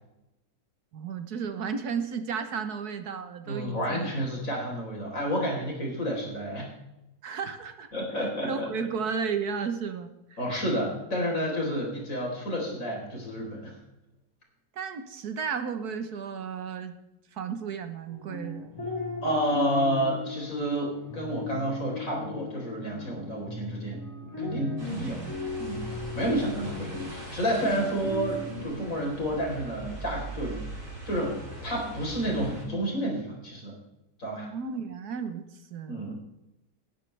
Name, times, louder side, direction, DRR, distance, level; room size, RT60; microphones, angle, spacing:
voice 1, 0.9-4.1 7.2-7.9 8.5-10.1 14.8-17.0 17.3-18.7 24.9-25.3 34.5-35.4 35.7-36.0, right 6 dB, 75° right, 8 dB, 1.6 m, -33 dB
voice 2, 3.4-6.7 7.9-8.7 10.4-13.8 19.2-24.0 24.4-25.2 25.6-33.8 34.2-34.5 35.9-36.1, equal, 55° left, -1 dB, 4.6 m, -30 dB
sound 1, 18.1-28.7, left 3 dB, 15° left, 6.0 m, -37 dB
sound 2, 24.8-32.7, right 2 dB, 50° right, 4.3 m, -41 dB
19.5 x 10.5 x 3.4 m, 0.94 s
omnidirectional pair, 1.7 m